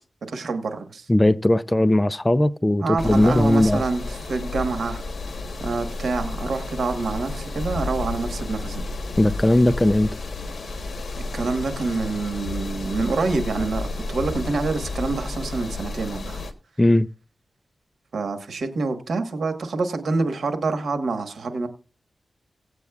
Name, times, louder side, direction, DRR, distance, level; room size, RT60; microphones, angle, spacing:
voice 1, 0.3-1.1 2.8-4.0 4.3-5.0 5.6-8.8 11.2-16.4 18.1-21.7, right 3 dB, 85° right, 1.3 m, -26 dB
voice 2, 1.1-3.8 9.2-10.1 16.8-17.1, left 1 dB, 15° left, 0.4 m, -18 dB
sound 1, 3.0-16.5, left 2 dB, 65° left, 1.1 m, -32 dB
18.0 x 8.2 x 2.3 m
cardioid pair, 70°, 0 cm